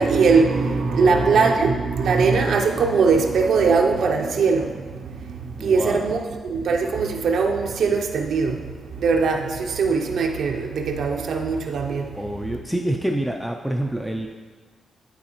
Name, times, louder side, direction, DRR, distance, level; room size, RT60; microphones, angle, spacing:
voice 1, 0.0-5.1 5.6-8.6 9.0-12.1, right 4 dB, 70° right, 2 dB, 0.5 m, -20 dB
voice 2, 1.0-1.8 5.6-6.1 12.1-14.3, right 1 dB, ahead, 1 dB, 0.4 m, -28 dB
11.0 x 4.0 x 2.9 m, 1.4 s
cardioid pair, 120°, 0 cm